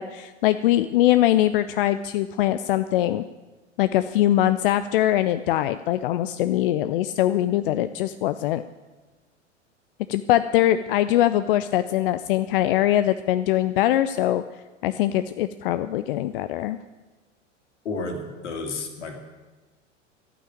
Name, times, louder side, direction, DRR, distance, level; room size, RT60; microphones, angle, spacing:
voice 1, 0.0-3.2 3.8-8.6 10.1-14.4 14.8-16.8, left 13 dB, 45° left, 12 dB, 0.5 m, -22 dB
voice 2, 17.8-19.1, left 3 dB, 65° left, 4 dB, 2.5 m, -31 dB
12.0 x 9.0 x 9.3 m, 1.2 s
figure-of-eight pair, 90°, 38 cm